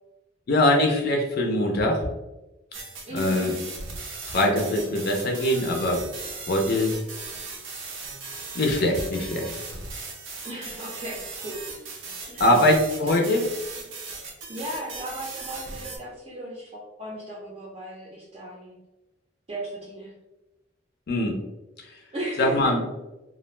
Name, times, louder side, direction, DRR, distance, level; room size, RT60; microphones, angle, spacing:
voice 1, 0.5-2.1 3.1-3.5 4.3-6.0 6.5-6.9 8.5-9.5 12.4-13.5 21.1-21.3 22.4-22.8, left 1 dB, 55° left, 2 dB, 0.4 m, -22 dB
sound 1, 2.7-16.0, right 4 dB, 85° right, 0.6 m, -38 dB
voice 2, 3.1-3.6 10.4-11.6 12.2-12.4 14.2-18.8 19.5-20.1 22.1-22.7, right 1 dB, 30° right, -5 dB, 0.5 m, -36 dB
2.4 x 2.1 x 3.1 m, 1.0 s
head